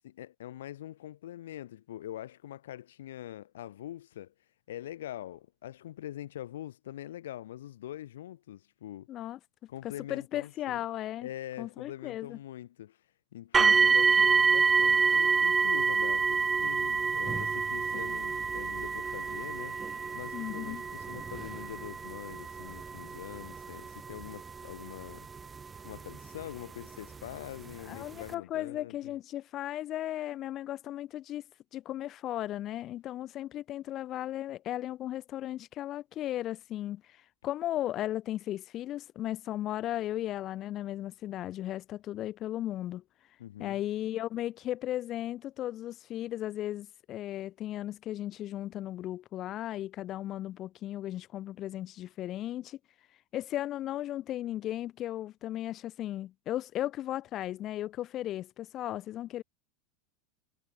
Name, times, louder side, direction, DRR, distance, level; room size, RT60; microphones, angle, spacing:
voice 1, 0.0-4.3 4.7-9.1 9.7-10.8 11.2-13.0 13.3-19.8 20.1-25.3 25.8-29.1 43.4-43.8, left 12 dB, 75° left, 7.1 m, -44 dB
voice 2, 9.1-9.4 9.8-11.3 11.6-12.4 13.6-13.9 20.3-20.8 27.8-31.4 31.7-43.0 43.6-52.8 53.3-59.4, left 13 dB, 45° left, 6.8 m, -36 dB
sound 1, 13.5-26.4 27.3-27.4 27.9-28.0, right 5 dB, 20° right, 5.0 m, -27 dB
hypercardioid pair, 90°, 0 cm